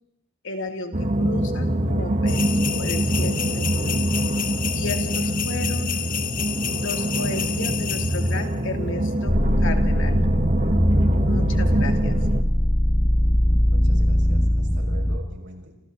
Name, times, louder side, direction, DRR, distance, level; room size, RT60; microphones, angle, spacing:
voice 1, 0.4-2.5 2.8-4.1 4.7-5.9 6.7-10.2 11.2-12.2, left 2 dB, 60° left, 5 dB, 2.9 m, -34 dB
sound 1, 0.9-12.4, right 1 dB, 35° right, 1.6 m, -24 dB
sound 2, 2.3-8.5, left 10 dB, 40° left, 1.0 m, -30 dB
sound 3, 9.3-15.2, equal, 20° left, 1.6 m, -21 dB
voice 2, 13.7-15.7, right 1 dB, 60° right, 2 dB, 5.9 m, -43 dB
29.0 x 28.0 x 4.0 m, 0.90 s
head